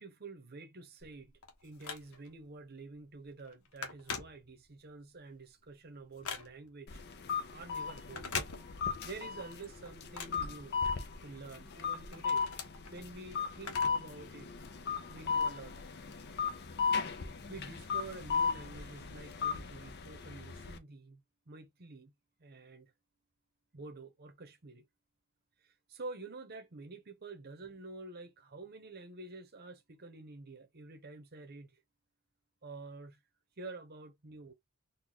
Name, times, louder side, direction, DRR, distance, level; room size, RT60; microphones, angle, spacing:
voice 1, 0.0-1.3 1.6-7.0 7.5-8.4 9.0-10.8 11.2-12.5 12.9-14.5 15.1-15.8 17.5-22.1 22.4-22.9 23.7-24.8 25.6-31.8 32.6-33.2 33.6-34.5, right 3 dB, 45° right, 0.8 m, -49 dB
Telephone, 1.0-2.4 2.9-3.1 3.4-4.9 5.3-6.8 8.0-9.1 9.4-11.2 11.7-14.2 14.5-14.6 15.4-15.5, left 5 dB, 75° left, 0.9 m, -43 dB
sound 1, 6.9-20.8, left 5 dB, 50° left, 0.6 m, -37 dB
4.0 x 2.3 x 2.9 m
head